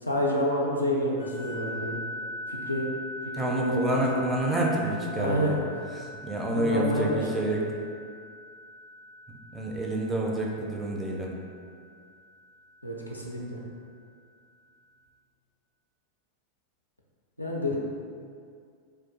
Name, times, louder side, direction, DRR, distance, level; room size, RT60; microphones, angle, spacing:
voice 1, 0.0-2.0 2.5-2.9 3.2-4.2 5.1-5.6 6.5-7.4 12.8-13.6 17.4-17.8, equal, 85° left, -2 dB, 0.3 m, -29 dB
sound 1, 1.2-13.4, left 1 dB, 75° right, 0.5 m, -42 dB
voice 2, 3.3-5.5 6.0-7.6 9.3-11.3, right 1 dB, 10° right, -2 dB, 0.3 m, -28 dB
2.3 x 2.1 x 2.5 m, 2.2 s
figure-of-eight pair, 90°, 0 cm